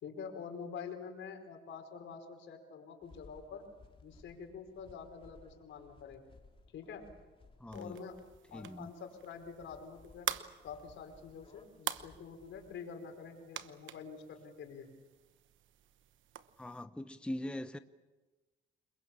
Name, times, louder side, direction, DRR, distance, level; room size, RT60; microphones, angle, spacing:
voice 1, 0.0-3.6 4.0-6.2 6.7-7.0 7.7-8.2 8.5-10.3 10.6-14.9, left 6 dB, 75° left, 4.9 m, -47 dB
sound 1, 3.0-12.8, left 3 dB, 25° left, 3.1 m, -61 dB
voice 2, 7.6-8.0 8.5-8.9 16.6-17.8, left 1 dB, 5° left, 0.9 m, -41 dB
sound 2, 7.7-16.8, right 11 dB, 75° right, 1.1 m, -46 dB
28.5 x 21.5 x 7.4 m
cardioid pair, 90°, 20 cm